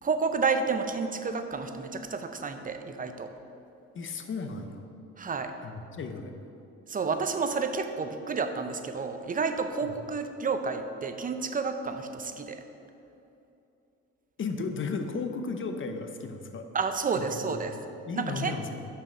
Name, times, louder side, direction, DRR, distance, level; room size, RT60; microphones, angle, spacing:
voice 1, 0.0-3.3 5.2-5.5 6.9-12.6 16.7-17.7 18.2-18.5, right 5 dB, 30° right, 7 dB, 0.6 m, -30 dB
voice 2, 3.9-4.9 5.6-6.3 9.8-9.9 14.4-16.7 17.1-18.9, left 4 dB, 40° left, 6 dB, 0.7 m, -35 dB
5.9 x 4.8 x 6.3 m, 2.8 s
cardioid pair, 90°, 30 cm